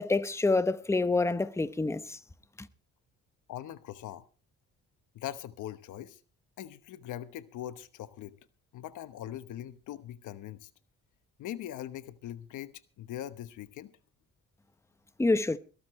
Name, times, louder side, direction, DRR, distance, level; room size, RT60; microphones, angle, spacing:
voice 1, 0.0-2.2 2.6-2.7 15.2-15.6, left 3 dB, 10° left, 0.9 m, -27 dB
voice 2, 3.5-4.2 5.1-6.2 6.6-8.4 8.7-10.7 11.4-13.9, left 12 dB, 85° left, 1.1 m, -41 dB
21.5 x 13.0 x 3.2 m
cardioid pair, 90°, 30 cm